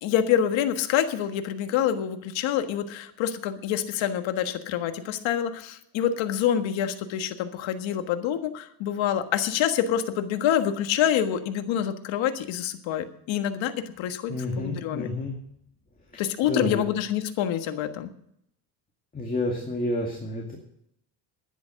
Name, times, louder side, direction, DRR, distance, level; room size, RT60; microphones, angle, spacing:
voice 1, 0.0-15.1 16.2-18.1, left 10 dB, 75° left, 8 dB, 1.6 m, -26 dB
voice 2, 14.3-15.3 16.1-16.2 16.5-16.8 19.1-20.6, left 1 dB, 20° left, 0 dB, 2.3 m, -29 dB
11.0 x 10.5 x 6.5 m, 0.72 s
cardioid pair, 130°, 46 cm